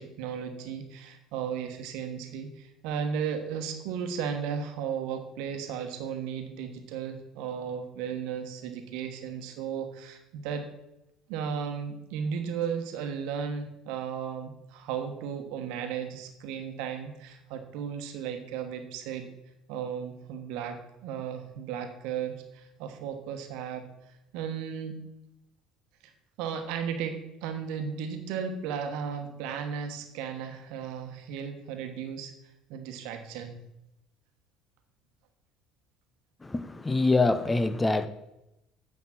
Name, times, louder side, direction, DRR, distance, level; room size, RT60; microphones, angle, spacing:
voice 1, 0.0-10.7 11.3-19.3 19.7-23.8 24.3-25.0 26.0-26.1 26.4-32.3 32.7-33.6, right 7 dB, 70° right, 7 dB, 1.2 m, -35 dB
voice 2, 36.4-38.1, left 3 dB, 20° left, 11 dB, 0.8 m, -25 dB
9.2 x 5.9 x 5.9 m, 0.89 s
hypercardioid pair, 60°, 0 cm